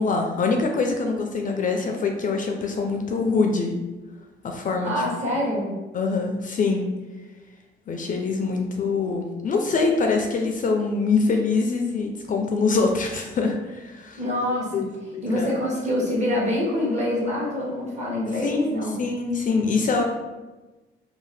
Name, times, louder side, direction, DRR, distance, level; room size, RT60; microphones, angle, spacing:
voice 1, 0.0-3.7 4.4-4.9 5.9-6.9 7.9-14.2 14.7-15.5 18.4-18.7 19.0-20.0, left 4 dB, 40° left, 3 dB, 0.4 m, -24 dB
voice 2, 4.8-5.7 14.2-14.8 15.2-19.0, left 1 dB, 35° right, -4 dB, 1.0 m, -25 dB
2.7 x 2.1 x 3.3 m, 1.2 s
cardioid pair, 90°, 20 cm